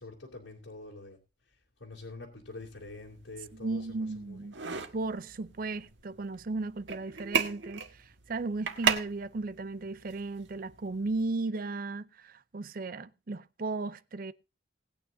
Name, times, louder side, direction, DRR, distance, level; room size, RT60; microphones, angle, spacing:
voice 1, 0.0-4.5, left 3 dB, 85° left, 2.9 m, -46 dB
sound 1, 2.5-11.3, right 6 dB, 75° right, 1.5 m, -37 dB
voice 2, 3.6-4.5 4.9-14.3, right 3 dB, 50° right, 0.5 m, -35 dB
19.0 x 9.3 x 2.6 m
head